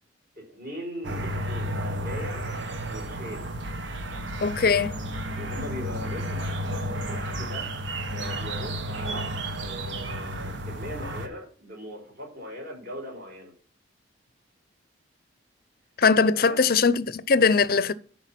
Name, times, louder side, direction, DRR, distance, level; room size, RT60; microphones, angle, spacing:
voice 1, 0.4-2.5 2.9-3.5 5.4-6.8 7.1-7.7 8.1-13.5 16.3-16.7, equal, 50° right, 5.5 m, -40 dB
sound 1, 1.0-11.3, right 1 dB, 75° right, 1.3 m, -32 dB
voice 2, 4.4-4.9 16.0-17.9, left 5 dB, 50° left, 0.5 m, -21 dB
11.5 x 4.8 x 5.9 m
head